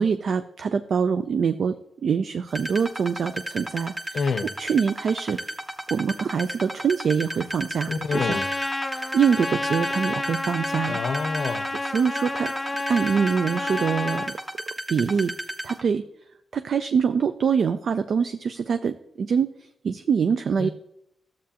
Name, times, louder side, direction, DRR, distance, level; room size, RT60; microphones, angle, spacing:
voice 1, 0.0-1.8 2.0-5.5 5.9-8.4 8.9-11.0 11.8-12.5 12.9-14.3 14.9-15.3 15.6-16.0 16.5-20.7, right 6 dB, 65° right, 9 dB, 0.4 m, -24 dB
sound 1, 2.5-15.8, right 1 dB, 20° right, 0.9 m, -34 dB
voice 2, 4.1-4.5 7.9-8.4 10.9-11.7 20.6-20.7, left 5 dB, 65° left, 12 dB, 0.5 m, -27 dB
Trumpet, 8.1-14.3, left 2 dB, 20° left, 0.6 m, -30 dB
12.5 x 7.4 x 2.9 m, 0.76 s
cardioid pair, 85°, 0 cm